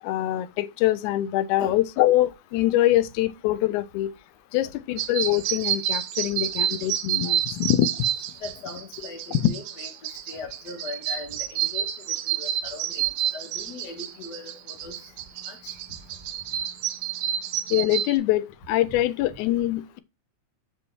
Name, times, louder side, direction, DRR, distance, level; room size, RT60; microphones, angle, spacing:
voice 1, 0.0-4.1 4.5-8.1 9.3-9.5 17.7-20.0, left 14 dB, 90° left, 2.0 m, -24 dB
sound 1, 5.0-18.2, right 11 dB, 80° right, 1.3 m, -29 dB
voice 2, 8.4-9.9 10.3-14.9 15.5-15.7, left 4 dB, 45° left, 1.6 m, -40 dB
7.9 x 5.2 x 2.7 m
omnidirectional pair, 3.4 m